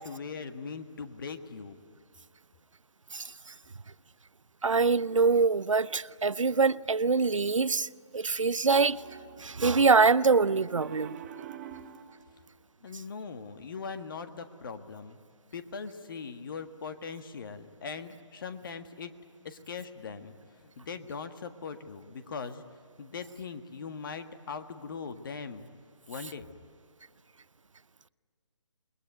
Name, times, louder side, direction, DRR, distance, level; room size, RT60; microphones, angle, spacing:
voice 1, 0.0-1.8 12.8-15.2 15.5-19.1 19.5-20.3 20.6-22.6 23.0-25.7 26.1-26.5, left 5 dB, 45° left, 1.7 m, -40 dB
voice 2, 3.1-3.5 4.6-9.0 9.4-11.2, right 4 dB, 85° right, 0.7 m, -24 dB
Piano, 8.7-12.1, right 9 dB, 25° right, 1.2 m, -46 dB
28.5 x 21.5 x 9.3 m
figure-of-eight pair, 155°, 16 cm